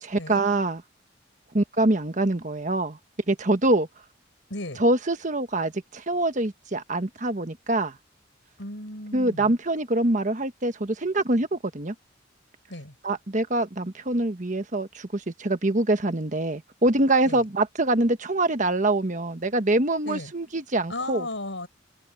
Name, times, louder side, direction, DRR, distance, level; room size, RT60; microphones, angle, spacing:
voice 1, 0.0-0.8 1.5-3.0 3.3-3.9 4.8-7.9 9.1-11.9 13.0-21.3, right 2 dB, 40° right, 1.3 m, -24 dB
voice 2, 4.5-4.8 8.6-9.6 12.7-12.9 17.2-17.4 20.1-20.3 20.9-21.7, left 1 dB, 70° left, 5.7 m, -35 dB
head